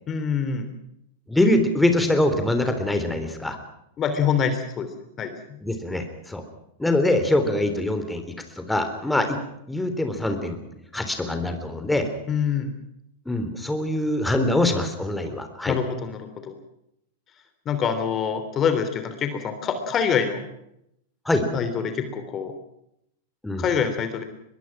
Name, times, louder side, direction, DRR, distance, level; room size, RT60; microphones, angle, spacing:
voice 1, 0.1-0.7 4.0-4.9 5.2-5.3 12.3-12.7 15.7-16.5 17.6-20.4 21.5-22.5 23.6-24.2, left 7 dB, 30° left, 9 dB, 3.2 m, -25 dB
voice 2, 1.3-3.6 5.6-6.4 6.8-8.2 8.5-9.4 9.7-10.6 10.9-12.1 13.2-15.8 21.2-21.5 23.4-23.7, left 1 dB, 5° left, 7 dB, 3.5 m, -23 dB
23.5 x 22.0 x 6.0 m, 0.79 s
hypercardioid pair, 100°, 0 cm